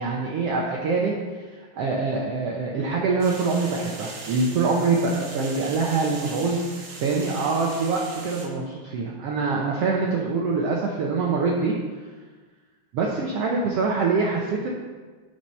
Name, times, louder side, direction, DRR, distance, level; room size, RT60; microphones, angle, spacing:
voice 1, 0.0-11.7 12.9-14.7, right 4 dB, 85° right, -2 dB, 1.3 m, -25 dB
sound 1, 3.2-8.5, right 2 dB, 50° right, 2.0 m, -39 dB
10.5 x 6.0 x 5.4 m, 1.4 s
omnidirectional pair, 4.1 m